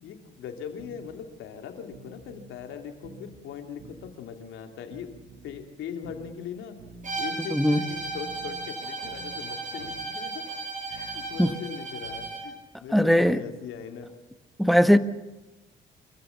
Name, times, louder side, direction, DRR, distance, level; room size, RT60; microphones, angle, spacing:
voice 1, 0.0-6.8 7.2-10.5 10.9-14.1 14.6-14.7, left 7 dB, 85° left, 5 dB, 3.0 m, -40 dB
sound 1, 0.8-1.1 1.9-2.6 3.0-3.4 3.8-4.1 4.9-5.6 6.0-6.4 6.8-7.1 7.9-8.6 9.0-9.4 9.8-10.1 10.9-11.6 12.0-12.4, right 3 dB, 85° right, 5.6 m, -49 dB
Bowed string instrument, 7.0-12.5, right 3 dB, 40° right, 7.8 m, -35 dB
voice 2, 7.5-7.8 11.4-11.5 12.9-13.4 14.6-15.0, equal, ahead, 11 dB, 1.2 m, -19 dB
26.0 x 15.0 x 7.2 m, 1.1 s
cardioid pair, 90°, 20 cm